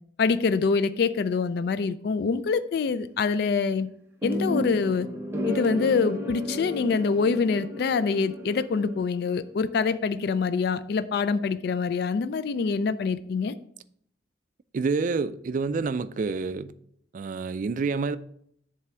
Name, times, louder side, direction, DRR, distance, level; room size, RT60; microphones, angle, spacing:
voice 1, 0.2-3.9 4.2-5.1 5.5-13.5, left 5 dB, 60° left, 0.3 m, -25 dB
sound 1, 4.2-9.3, equal, 15° right, 0.8 m, -33 dB
voice 2, 14.7-16.7 17.1-18.2, right 4 dB, 45° right, 0.3 m, -28 dB
7.4 x 3.5 x 5.9 m
head